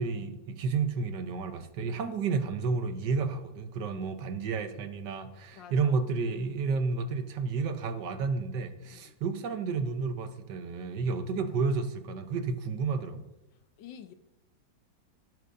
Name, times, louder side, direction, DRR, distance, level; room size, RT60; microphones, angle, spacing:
voice 1, 0.0-13.2, right 4 dB, 70° right, 1.5 m, -31 dB
voice 2, 5.5-6.0 8.9-9.1 13.8-14.1, left 8 dB, 85° left, 1.5 m, -49 dB
16.5 x 9.4 x 2.6 m
omnidirectional pair, 2.0 m